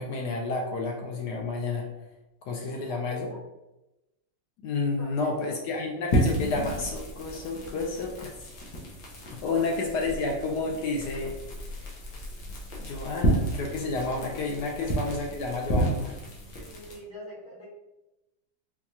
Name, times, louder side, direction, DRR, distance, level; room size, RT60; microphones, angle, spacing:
voice 1, 0.0-1.9 2.4-3.3 4.6-8.3 9.3-11.3 12.8-16.2, left 3 dB, 70° left, 1 dB, 1.0 m, -30 dB
voice 2, 2.6-3.4 5.0-5.5 9.5-10.2 14.8-15.0 16.5-17.7, equal, 40° left, -7 dB, 1.0 m, -44 dB
sound 1, 6.1-17.0, right 1 dB, 90° left, 1.6 m, -31 dB
4.6 x 2.3 x 2.7 m, 0.97 s
omnidirectional pair, 2.0 m